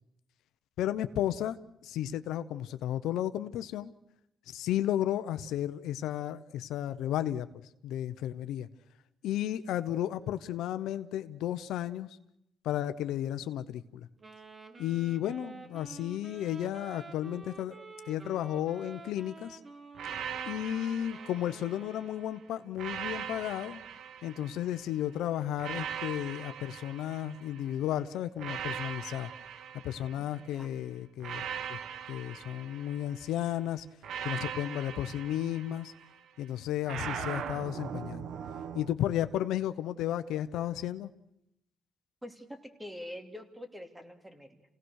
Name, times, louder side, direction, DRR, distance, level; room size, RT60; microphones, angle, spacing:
voice 1, 0.8-1.6 1.8-3.9 4.5-7.5 7.8-8.7 9.2-12.1 12.6-14.1 14.8-17.8 18.1-19.6 20.5-23.8 24.2-29.3 29.8-31.8 32.1-33.9 34.2-35.9 36.4-38.2 38.7-41.1, left 12 dB, 85° left, 11 dB, 0.9 m, -33 dB
Wind instrument woodwind instrument, 14.2-22.7, right 3 dB, 35° right, 2.8 m, -50 dB
sound 1, 20.0-22.1 22.8-24.9 25.6-27.8 28.4-30.5 31.2-33.4 34.0-36.2 36.9-38.9, right 8 dB, 75° right, 1.3 m, -40 dB
voice 2, 30.2-30.9 42.2-44.6, left 1 dB, 10° right, 6 dB, 2.8 m, -45 dB
29.0 x 17.5 x 6.5 m, 0.81 s
cardioid pair, 90°, 0 cm